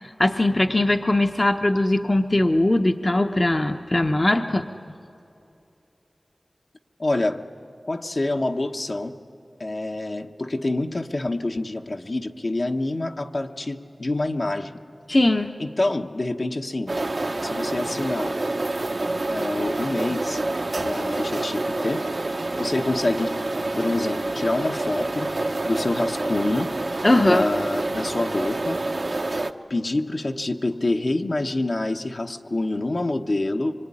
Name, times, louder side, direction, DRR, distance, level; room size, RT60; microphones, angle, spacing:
voice 1, 0.0-4.6 15.1-15.5 27.0-27.4, left 1 dB, 40° left, 5 dB, 0.9 m, -20 dB
voice 2, 7.0-7.4 7.9-9.2 9.6-14.7 15.6-16.9 17.4-18.4 19.3-20.4 20.8-22.0 22.6-23.4 23.7-26.7 27.2-29.2 29.7-33.7, left 2 dB, 60° left, 3 dB, 1.2 m, -27 dB
sound 1, 16.9-29.5, right 2 dB, 60° right, 1.0 m, -27 dB
25.5 x 23.5 x 9.9 m, 2.8 s
wide cardioid pair, 60°, 0 cm